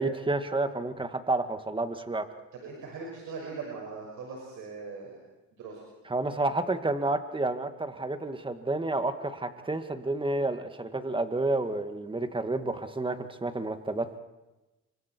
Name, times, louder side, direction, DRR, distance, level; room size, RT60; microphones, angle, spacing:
voice 1, 0.0-2.3 6.1-14.2, right 2 dB, 15° right, 8 dB, 2.2 m, -30 dB
voice 2, 2.5-5.2 5.6-5.8, right 4 dB, 85° right, -1 dB, 6.3 m, -40 dB
29.0 x 25.0 x 4.7 m, 1.1 s
cardioid pair, 90°, 30 cm